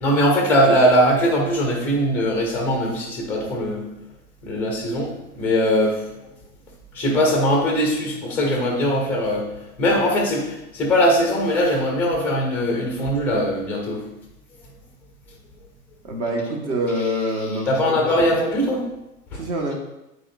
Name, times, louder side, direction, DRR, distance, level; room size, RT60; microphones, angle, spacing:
voice 1, 0.0-3.9 4.4-6.0 6.9-9.5 9.8-14.0 17.7-18.9 19.3-19.4, equal, 5° left, 1 dB, 0.5 m, -20 dB
voice 2, 16.0-18.4 19.3-19.7, equal, 45° right, 1 dB, 1.5 m, -26 dB
8.5 x 4.6 x 2.5 m, 0.92 s
figure-of-eight pair, 110°, 47 cm